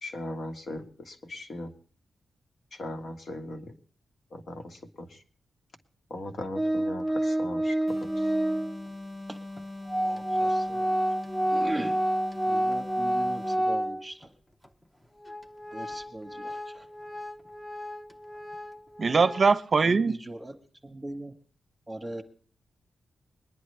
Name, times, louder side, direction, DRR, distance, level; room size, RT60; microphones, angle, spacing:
voice 1, 0.0-1.7 2.8-3.7 4.3-5.1 6.1-7.7 8.0-8.1, left 1 dB, 55° left, 1.7 m, -38 dB
Organ, 6.6-8.8 9.6-9.7 9.9-14.3 14.6-14.7 15.2-19.6, right 1 dB, 5° left, 0.8 m, -29 dB
sound 1, 7.9-13.8, left 2 dB, 30° left, 1.5 m, -41 dB
voice 2, 10.0-10.9 11.5-12.0 12.5-14.3 15.7-16.8 19.8-20.5 20.8-21.3 21.9-22.2, right 1 dB, 15° right, 1.2 m, -39 dB
voice 3, 19.0-20.2, right 4 dB, 45° right, 0.6 m, -22 dB
22.0 x 10.5 x 3.3 m
wide cardioid pair, 115°, 0 cm